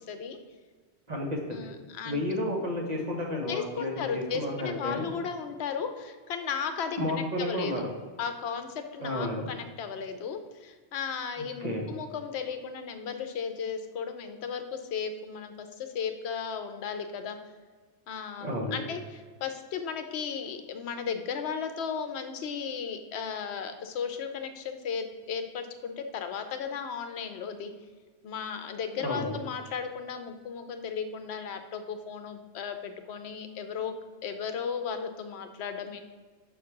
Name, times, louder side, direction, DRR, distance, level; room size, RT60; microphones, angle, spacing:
voice 1, 0.1-0.4 1.5-2.2 3.5-7.7 8.2-17.4 18.1-27.7 28.2-33.9 34.2-36.0, left 6 dB, 70° left, 7 dB, 0.9 m, -35 dB
voice 2, 1.1-1.7 2.0-5.1 7.0-7.9 9.0-9.5 11.4-11.8 18.4-18.8 29.0-29.3, left 1 dB, 40° right, -1 dB, 1.1 m, -32 dB
5.7 x 3.2 x 5.7 m, 1.4 s
omnidirectional pair, 1.2 m